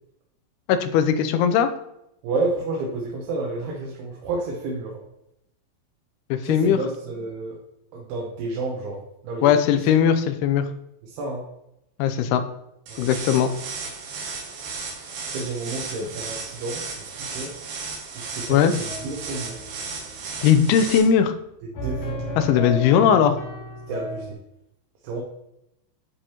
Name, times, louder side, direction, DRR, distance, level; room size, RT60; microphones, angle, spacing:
voice 1, 0.7-1.7 6.3-6.8 9.4-10.6 12.0-12.4 13.0-13.5 18.5-18.7 20.4-21.3 22.4-23.4, left 8 dB, 85° left, 9 dB, 2.6 m, -19 dB
voice 2, 2.2-5.0 6.4-7.6 7.9-9.8 11.0-11.5 12.9-13.0 15.3-17.5 18.1-19.6 21.8-22.4 23.9-24.4 25.0-25.2, right 3 dB, 85° right, -2 dB, 3.0 m, -30 dB
sound 1, 12.9-21.0, right 4 dB, 70° right, 2.8 m, -35 dB
sound 2, 18.9-24.3, equal, 60° left, 1.7 m, -35 dB
10.0 x 4.8 x 2.9 m, 0.82 s
omnidirectional pair, 4.5 m